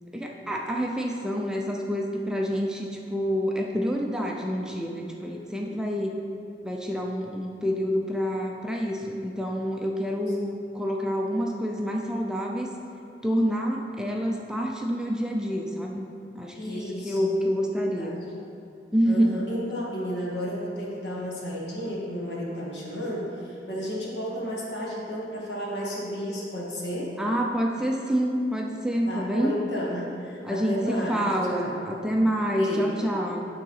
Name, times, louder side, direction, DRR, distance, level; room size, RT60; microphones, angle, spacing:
voice 1, 0.0-6.2 6.6-12.7 13.2-16.1 16.3-18.1 18.9-19.4 27.2-29.5 30.4-33.5, equal, 5° right, 0 dB, 0.5 m, -27 dB
voice 2, 5.2-5.8 16.5-17.4 18.0-18.3 19.0-27.2 29.1-31.8 32.6-32.9, equal, 70° left, -5 dB, 2.0 m, -33 dB
10.5 x 3.9 x 5.6 m, 2.8 s
head